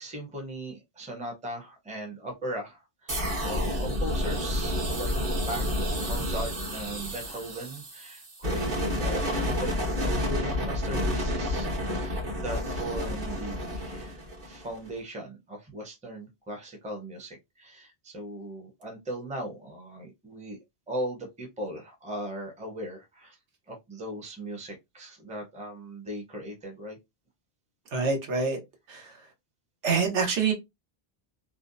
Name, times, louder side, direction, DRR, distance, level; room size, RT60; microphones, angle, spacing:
voice 1, 0.0-5.6 6.0-20.6 20.9-23.4 23.7-27.0, right 1 dB, 10° right, 0.5 m, -38 dB
sound 1, 3.1-14.9, left 1 dB, 50° right, 1.1 m, -30 dB
voice 2, 27.9-28.6 28.9-29.0 29.8-30.5, right 5 dB, 85° right, 1.1 m, -25 dB
2.6 x 2.1 x 2.5 m
omnidirectional pair, 1.1 m